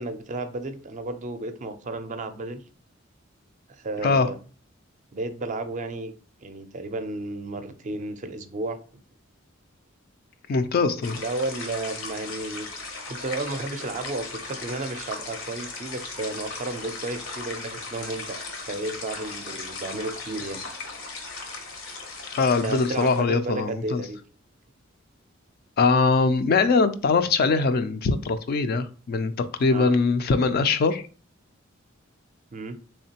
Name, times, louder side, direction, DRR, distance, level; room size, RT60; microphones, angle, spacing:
voice 1, 0.0-2.6 3.7-4.4 5.1-6.1 6.4-8.8 11.2-20.6 22.6-24.2 29.7-29.9 32.5-32.8, right 2 dB, 35° right, 9 dB, 0.4 m, -33 dB
voice 2, 10.5-11.2 22.3-24.0 25.8-29.3 29.6-31.0, left 4 dB, 50° left, 10 dB, 0.3 m, -22 dB
sound 1, 11.0-23.2, left 3 dB, 75° left, 0.9 m, -37 dB
3.6 x 3.2 x 2.8 m, 0.38 s
head